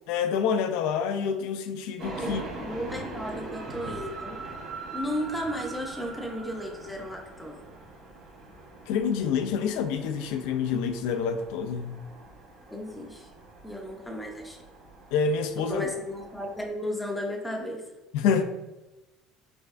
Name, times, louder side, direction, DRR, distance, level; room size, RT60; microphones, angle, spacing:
voice 1, 0.1-2.4 8.9-12.0 15.1-15.9 18.1-18.4, left 6 dB, 80° left, 8 dB, 0.3 m, -27 dB
sound 1, 2.0-16.7, right 2 dB, 50° right, 0.9 m, -42 dB
voice 2, 2.2-4.4 4.9-7.6 12.7-13.3 13.6-14.6 15.7-17.9, equal, 5° left, 1 dB, 0.6 m, -34 dB
4.5 x 3.3 x 2.4 m, 1.0 s
cardioid pair, 145°, 0 cm